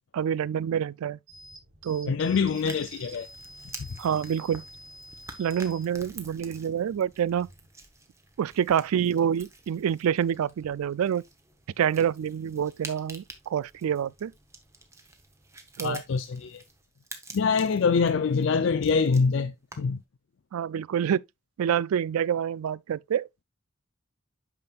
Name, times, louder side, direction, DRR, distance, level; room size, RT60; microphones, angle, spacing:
voice 1, 0.1-1.2 1.8-2.2 4.0-4.6 5.4-7.5 8.4-11.2 11.8-14.3 15.8-16.0 20.5-21.2 21.6-23.3, right 8 dB, 85° right, 0.3 m, -27 dB
sound 1, 1.3-7.7, right 1 dB, 65° right, 2.0 m, -49 dB
voice 2, 2.1-3.3 15.8-16.6 17.3-20.0, left 5 dB, 60° left, 0.4 m, -25 dB
sound 2, 2.5-20.1, right 3 dB, 15° right, 0.9 m, -48 dB
8.8 x 5.9 x 2.4 m
head